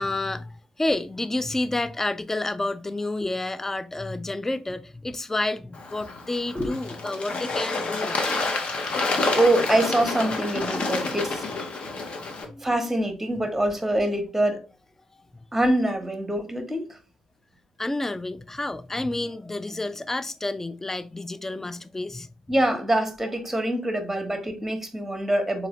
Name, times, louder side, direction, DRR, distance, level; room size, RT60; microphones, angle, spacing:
voice 1, 0.0-8.2 12.1-12.2 12.5-12.7 17.8-22.3, left 2 dB, 15° left, 0.3 m, -30 dB
Bird / Water, 5.7-12.4, left 3 dB, 45° left, 0.7 m, -28 dB
voice 2, 9.3-11.4 12.6-14.6 15.5-17.0 22.5-25.7, right 1 dB, 5° right, 1.0 m, -24 dB
3.9 x 2.6 x 2.8 m
figure-of-eight pair, 40°, 3 cm